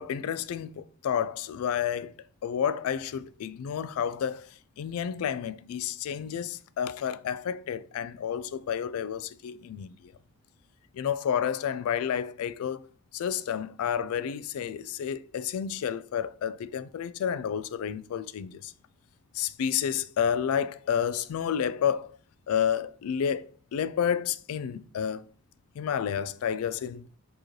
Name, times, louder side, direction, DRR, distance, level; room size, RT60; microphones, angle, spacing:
voice 1, 0.0-2.1 2.4-9.9 10.9-12.8 13.1-18.7 19.3-22.2 22.5-25.3 25.8-27.1, left 8 dB, 75° left, 0.3 m, -30 dB
4.6 x 2.9 x 3.1 m
head